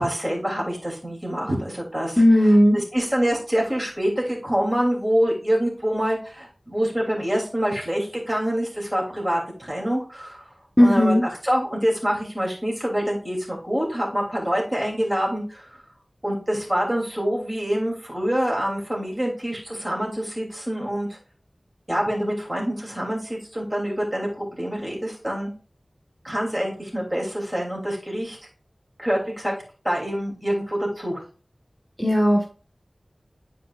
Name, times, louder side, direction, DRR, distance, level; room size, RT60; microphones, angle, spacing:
voice 1, 0.0-10.5 10.8-15.7 16.2-21.2 21.9-25.5 26.2-28.4 29.0-29.5 29.8-31.2, equal, 25° right, -2 dB, 2.9 m, -26 dB
voice 2, 2.2-2.8 10.8-11.2 32.0-32.4, equal, 5° left, -1 dB, 1.4 m, -16 dB
10.5 x 4.6 x 2.4 m, 0.39 s
wide cardioid pair, 55°, 0 cm